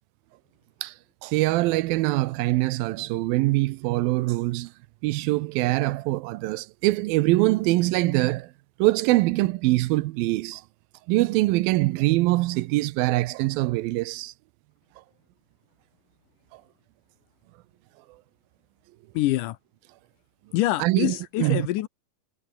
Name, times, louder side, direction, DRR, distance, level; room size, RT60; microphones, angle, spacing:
voice 1, 1.2-4.7 5.0-8.5 8.8-10.6 11.1-14.3 16.5-16.6 20.8-21.7, right 19 dB, 85° right, 2.5 m, -23 dB
voice 2, 19.1-19.6 20.5-21.9, left 16 dB, 75° left, 2.2 m, -25 dB
omnidirectional pair, 4.1 m